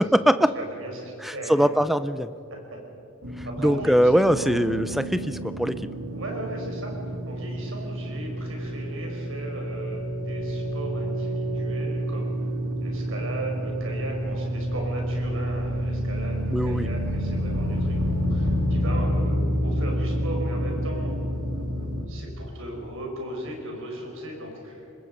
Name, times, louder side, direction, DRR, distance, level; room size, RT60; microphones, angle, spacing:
voice 1, 0.0-0.5 1.2-2.3 3.4-5.9 16.5-16.9, equal, ahead, 13 dB, 0.5 m, -22 dB
voice 2, 0.6-1.7 2.5-2.8 3.5-4.5 6.1-7.0 7.3-12.3 12.8-21.2 22.1-24.9, right 1 dB, 60° right, 1 dB, 5.2 m, -37 dB
sound 1, 3.2-22.0, equal, 80° right, 2.8 m, -28 dB
24.5 x 20.5 x 5.4 m, 2.9 s
head